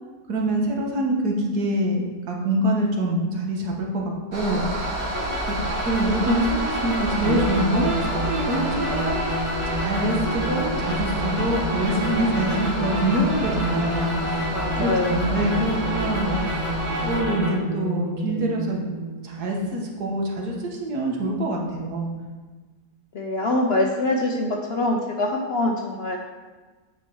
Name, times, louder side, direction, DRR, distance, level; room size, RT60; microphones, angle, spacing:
voice 1, 0.3-5.6 5.8-9.4 9.7-14.5 14.8-16.7 17.0-18.8 19.2-22.1, right 1 dB, 75° right, -1 dB, 1.7 m, -25 dB
sound 1, 4.3-17.2, right 1 dB, 35° right, 1.4 m, -30 dB
sound 2, 4.7-17.5, right 1 dB, 10° right, 1.4 m, -31 dB
voice 2, 5.5-5.8 14.5-15.3 23.1-26.2, left 2 dB, 60° left, 1 dB, 0.7 m, -24 dB
sound 3, 7.2-20.1, equal, 40° left, 2.6 m, -30 dB
9.4 x 4.5 x 4.6 m, 1.3 s
omnidirectional pair, 1.7 m